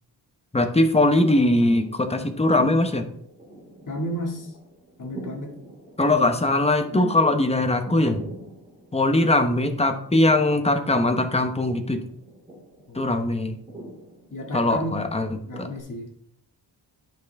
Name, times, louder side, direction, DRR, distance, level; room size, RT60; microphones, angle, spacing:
voice 1, 0.5-3.0 6.0-8.2 8.9-12.0 12.9-13.6 14.5-15.7, left 2 dB, 15° left, 7 dB, 0.8 m, -21 dB
sound 1, 1.5-15.8, right 1 dB, 15° right, 2.9 m, -45 dB
voice 2, 3.9-4.5 5.0-5.5 12.9-13.2 14.3-15.0 15.4-16.1, equal, 45° left, 0 dB, 2.1 m, -32 dB
10.5 x 5.6 x 3.5 m, 0.68 s
wide cardioid pair, 115°, 43 cm